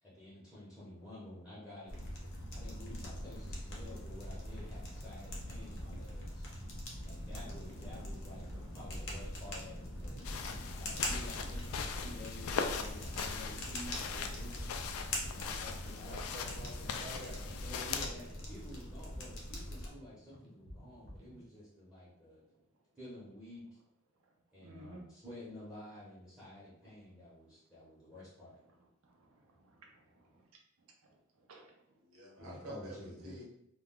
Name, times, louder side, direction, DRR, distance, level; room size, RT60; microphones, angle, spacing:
voice 1, 0.0-2.0 2.5-6.5 7.0-10.2 10.7-14.7 15.3-16.2 17.3-22.4 23.0-23.7 24.5-28.6 32.4-33.3, left 1 dB, 5° right, -9 dB, 0.7 m, -51 dB
sound 1, 1.9-19.9, left 1 dB, 60° left, 0.7 m, -43 dB
sound 2, 4.5-21.4, equal, 45° right, 0.7 m, -54 dB
sound 3, 10.2-18.1, left 6 dB, 85° left, 0.3 m, -40 dB
voice 2, 16.0-17.5 32.0-33.0 33.2-33.4, right 1 dB, 90° right, -3 dB, 0.9 m, -48 dB
voice 3, 24.6-25.1 29.0-30.5 30.8-31.7, right 1 dB, 75° right, 1 dB, 0.5 m, -57 dB
2.2 x 2.2 x 3.6 m, 0.79 s
head